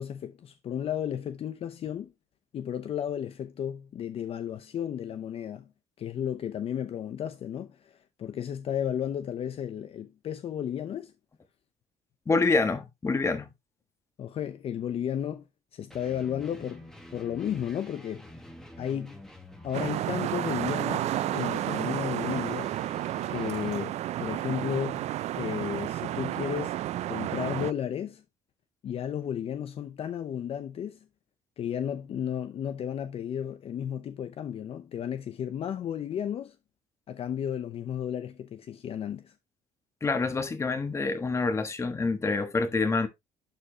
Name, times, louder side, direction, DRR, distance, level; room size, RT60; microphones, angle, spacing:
voice 1, 0.0-2.1 2.5-5.7 6.0-11.1 14.2-15.4 15.7-18.3 18.8-19.2 19.6-22.8 23.3-26.8 27.1-28.2 28.8-31.0 31.6-36.6 37.1-39.3, left 9 dB, 50° left, 0.7 m, -33 dB
voice 2, 12.3-13.5 40.0-43.1, left 3 dB, 20° left, 1.3 m, -27 dB
sound 1, 15.9-23.8, left 1 dB, 5° left, 1.5 m, -48 dB
sound 2, 19.7-27.7, right 13 dB, 55° right, 0.4 m, -31 dB
11.5 x 4.4 x 2.9 m
cardioid pair, 135°, 13 cm